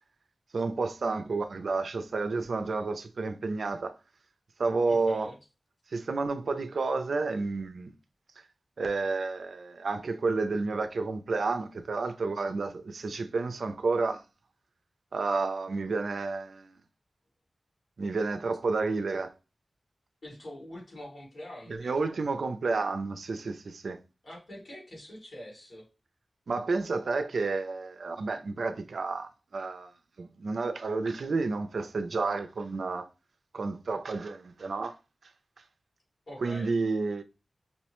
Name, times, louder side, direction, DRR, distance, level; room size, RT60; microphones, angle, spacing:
voice 1, 0.5-3.9 4.6-5.3 5.9-7.9 8.8-14.2 15.1-16.7 18.0-19.3 21.7-24.0 26.5-29.9 30.2-33.1 33.5-35.0 36.4-37.2, right 3 dB, 80° right, 0.4 m, -30 dB
voice 2, 4.9-5.4 20.2-22.2 24.2-25.9 36.3-36.7, left 1 dB, 55° left, 2.1 m, -45 dB
5.3 x 2.1 x 2.9 m
wide cardioid pair, 115°, 0 cm